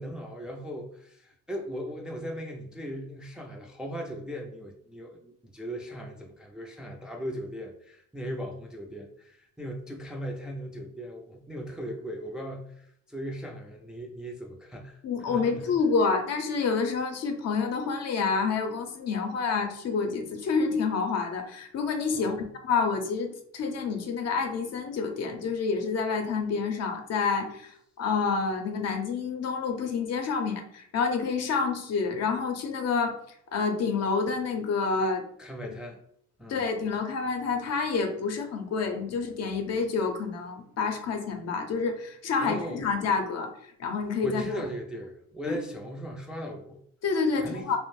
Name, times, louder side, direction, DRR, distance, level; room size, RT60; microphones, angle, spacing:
voice 1, 0.0-15.7 22.1-22.4 35.4-36.0 36.4-36.6 42.4-42.8 44.2-46.8 47.4-47.8, equal, 5° right, 1 dB, 0.3 m, -38 dB
voice 2, 15.0-22.4 22.6-33.2 33.5-35.2 36.5-44.4 45.5-45.6 47.0-47.8, left 5 dB, 55° left, 4 dB, 0.6 m, -28 dB
2.4 x 2.0 x 3.1 m, 0.68 s
cardioid pair, 90°, 30 cm